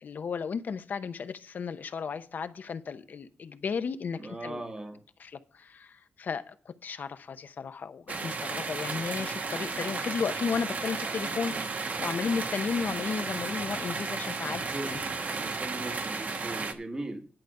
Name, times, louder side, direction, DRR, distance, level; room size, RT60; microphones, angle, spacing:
voice 1, 0.0-4.6 5.2-11.6 12.0-15.0, left 6 dB, 60° left, 0.7 m, -34 dB
voice 2, 4.2-5.0 14.5-15.0 15.3-17.3, right 2 dB, 20° right, 1.2 m, -39 dB
sound 1, 8.1-16.7, right 4 dB, 50° right, 1.1 m, -34 dB
11.0 x 5.1 x 7.8 m
wide cardioid pair, 165°, 3 cm